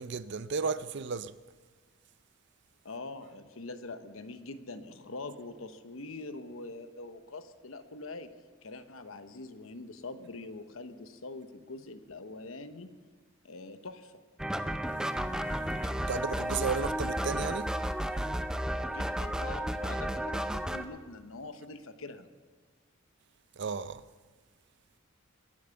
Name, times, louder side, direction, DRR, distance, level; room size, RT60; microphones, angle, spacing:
voice 1, 0.0-1.3 16.0-17.7 23.6-24.0, right 5 dB, 60° right, 0.5 m, -34 dB
voice 2, 2.8-8.3 8.6-12.9 13.4-14.2 18.8-22.3, left 3 dB, 80° left, 1.0 m, -44 dB
sound 1, 14.4-20.8, equal, 5° right, 0.5 m, -32 dB
22.0 x 8.6 x 7.0 m
head